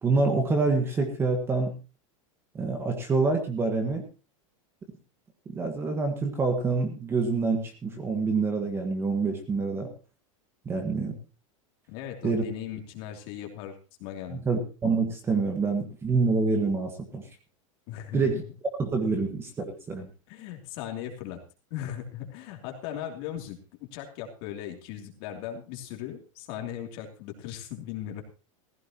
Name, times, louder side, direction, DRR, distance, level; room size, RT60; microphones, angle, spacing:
voice 1, 0.0-1.7 2.5-4.0 5.5-9.9 10.6-11.2 12.2-12.4 14.3-17.2 18.1-18.4 18.8-20.1, right 4 dB, 15° right, 5 dB, 1.5 m, -26 dB
voice 2, 11.9-14.4 17.9-18.3 20.3-21.4 21.7-28.2, left 10 dB, 45° left, 2 dB, 2.9 m, -38 dB
15.5 x 15.5 x 3.0 m, 0.32 s
supercardioid pair, 170°, 17 cm